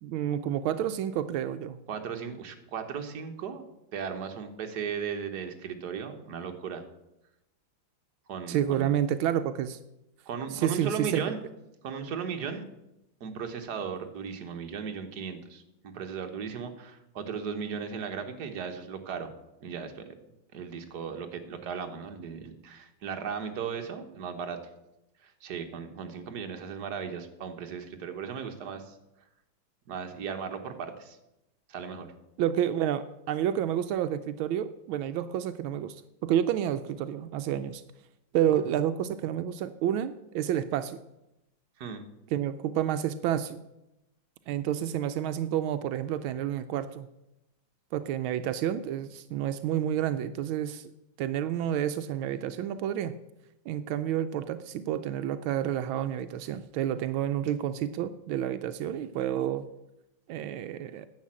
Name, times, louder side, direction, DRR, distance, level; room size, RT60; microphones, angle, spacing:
voice 1, 0.0-1.8 8.5-9.8 10.5-11.2 32.4-37.8 38.3-41.0 42.3-43.6 44.5-47.1 47.9-50.9 51.2-53.1 53.7-59.7 60.3-61.1, right 10 dB, 85° right, 11 dB, 1.4 m, -29 dB
voice 2, 1.9-3.6 3.9-6.8 8.3-8.9 10.3-11.4 11.8-12.6 13.2-19.3 19.6-20.1 20.5-24.6 25.2-28.9 29.9-31.2 31.7-32.1 41.8-42.1, right 6 dB, 55° right, 6 dB, 1.6 m, -36 dB
10.5 x 7.6 x 7.4 m, 0.90 s
omnidirectional pair, 2.2 m